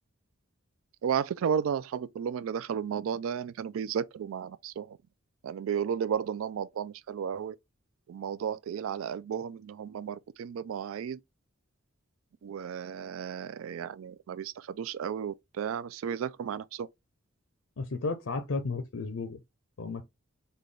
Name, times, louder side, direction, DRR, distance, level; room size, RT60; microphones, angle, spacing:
voice 1, 1.0-5.0 5.4-7.6 8.1-11.2 12.4-16.9, right 7 dB, 90° right, 0.3 m, -33 dB
voice 2, 17.8-19.4 19.8-20.1, left 3 dB, 80° left, 0.6 m, -33 dB
3.8 x 2.2 x 3.3 m
head